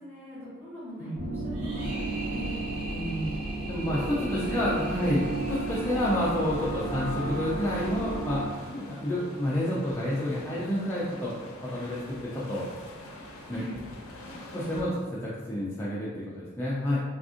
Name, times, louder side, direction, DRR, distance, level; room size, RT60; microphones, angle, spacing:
voice 1, 0.0-2.7 3.9-4.1 4.4-4.6 13.5-13.7, equal, 10° right, -10 dB, 1.4 m, -41 dB
sound 1, 1.1-8.4, right 2 dB, 50° right, 1.4 m, -33 dB
sound 2, 1.5-6.6, right 1 dB, 70° right, 0.6 m, -42 dB
voice 2, 2.9-3.3 3.7-8.4 8.7-11.3 11.6-12.6 13.5-13.6 14.5-17.0, left 1 dB, 10° left, -7 dB, 0.3 m, -29 dB
sound 3, 4.4-14.8, left 1 dB, 70° left, 0.5 m, -45 dB
3.4 x 2.5 x 2.4 m, 1.4 s
head